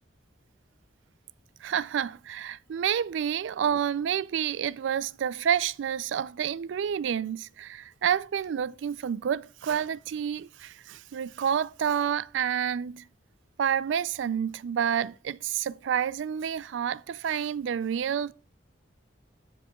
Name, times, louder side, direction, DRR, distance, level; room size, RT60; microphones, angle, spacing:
voice 1, 1.6-13.0 13.6-18.3, right 8 dB, 75° right, 0.3 m, -29 dB
12.5 x 7.2 x 2.3 m
head